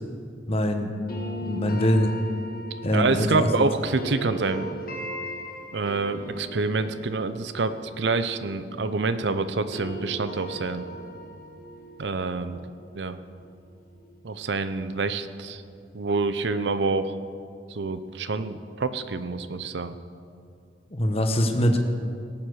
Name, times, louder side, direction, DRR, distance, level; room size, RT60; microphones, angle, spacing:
voice 1, 0.5-0.9 1.4-2.1 2.8-3.5 20.9-21.9, equal, 35° left, 5 dB, 1.1 m, -23 dB
sound 1, 1.1-9.2 9.5-14.4, equal, 55° left, 1.9 m, -39 dB
voice 2, 2.9-4.7 5.7-10.8 12.0-12.6 12.9-13.2 14.2-15.6 15.9-17.1 17.7-20.0, right 3 dB, 75° right, 11 dB, 0.7 m, -27 dB
17.5 x 7.4 x 6.4 m, 2.4 s
head